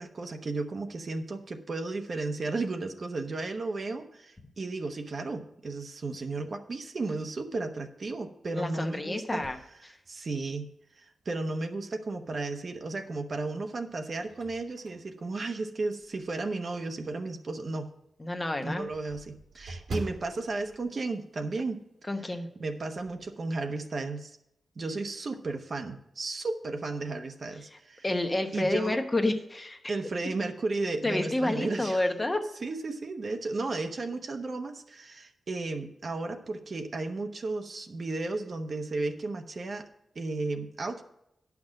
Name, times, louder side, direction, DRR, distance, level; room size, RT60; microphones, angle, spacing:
voice 1, 0.0-9.4 9.8-10.6 11.0-17.9 18.6-21.8 22.3-22.4 22.6-24.4 24.8-28.0 28.5-29.0 29.9-32.0 32.6-39.9 40.1-41.0, right 3 dB, 45° right, 5 dB, 1.0 m, -34 dB
voice 2, 8.5-9.6 18.2-18.8 22.1-22.5 28.0-29.8 31.0-32.4, left 1 dB, 20° left, 5 dB, 1.0 m, -29 dB
sound 1, 9.3-10.7 11.2-11.3 12.8-13.3 13.8-16.4 16.9-17.0 17.4-17.5 17.7-17.8 18.1-21.9 22.1-22.4 22.7-23.3, right 2 dB, 90° right, 2.4 m, -44 dB
10.5 x 6.0 x 6.3 m, 0.81 s
wide cardioid pair, 125°, 0 cm